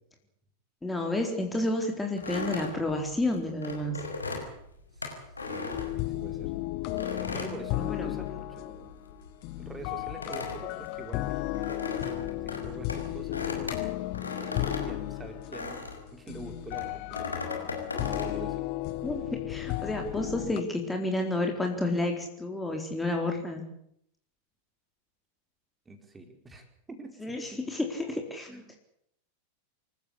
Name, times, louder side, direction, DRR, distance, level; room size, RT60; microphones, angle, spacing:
voice 1, 0.8-4.0 7.8-8.1 19.0-23.7 27.2-28.5, left 2 dB, 5° left, 3 dB, 4.0 m, -30 dB
sound 1, 2.2-6.5 7.0-8.5 8.7-16.1 16.7-18.4, left 3 dB, 80° left, 5.8 m, -37 dB
voice 2, 5.4-6.5 7.3-8.9 9.6-13.8 14.8-17.2 18.0-18.7 25.8-27.6 28.5-28.8, right 3 dB, 15° right, 6 dB, 4.8 m, -45 dB
sound 2, 5.7-20.6, left 17 dB, 45° left, 1.4 m, -34 dB
27.5 x 14.5 x 8.5 m, 0.71 s
figure-of-eight pair, 90°, 0 cm